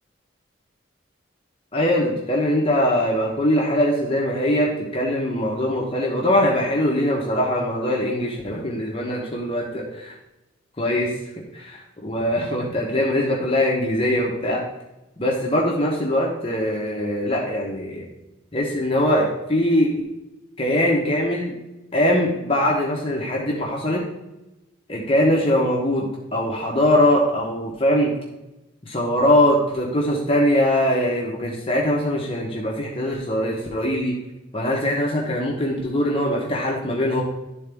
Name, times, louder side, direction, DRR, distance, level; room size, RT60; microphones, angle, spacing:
voice 1, 1.7-10.1 10.8-11.1 11.5-14.6 15.2-18.0 18.5-19.9 20.6-21.5 21.9-24.0 24.9-28.1 28.8-34.2 34.5-37.2, left 1 dB, 30° left, -3 dB, 1.0 m, -22 dB
11.5 x 3.9 x 3.5 m, 0.98 s
head